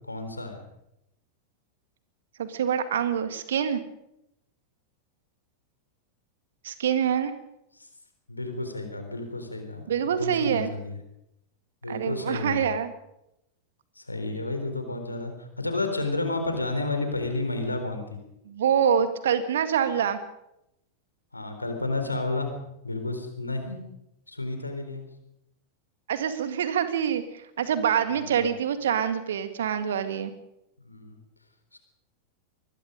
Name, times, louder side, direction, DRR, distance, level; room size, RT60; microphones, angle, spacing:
voice 1, 0.1-0.6 7.8-7.9 8.3-11.0 11.8-12.6 14.0-18.2 21.3-22.6 22.8-23.8 24.3-25.1 28.1-28.4 30.8-31.2 31.7-31.8, left 2 dB, 85° left, 6 dB, 3.9 m, -31 dB
voice 2, 2.4-3.8 6.6-7.3 9.9-10.7 11.9-12.9 18.5-20.2 26.1-30.3, right 8 dB, 60° right, 10 dB, 2.0 m, -26 dB
24.5 x 20.5 x 5.2 m, 0.83 s
figure-of-eight pair, 90°, 0 cm